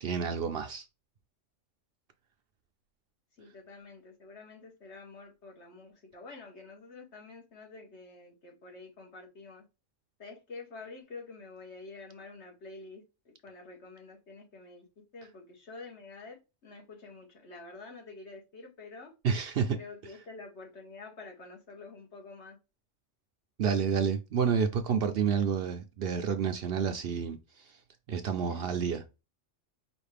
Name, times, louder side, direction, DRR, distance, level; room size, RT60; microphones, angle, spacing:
voice 1, 0.0-0.8 19.2-19.8 23.6-27.6 28.1-29.0, right 7 dB, 65° right, 0.7 m, -29 dB
voice 2, 3.4-9.6 10.2-14.9 15.1-19.1 19.7-22.6 28.4-28.8, left 3 dB, 65° left, 1.6 m, -48 dB
5.1 x 2.4 x 3.3 m
omnidirectional pair, 1.3 m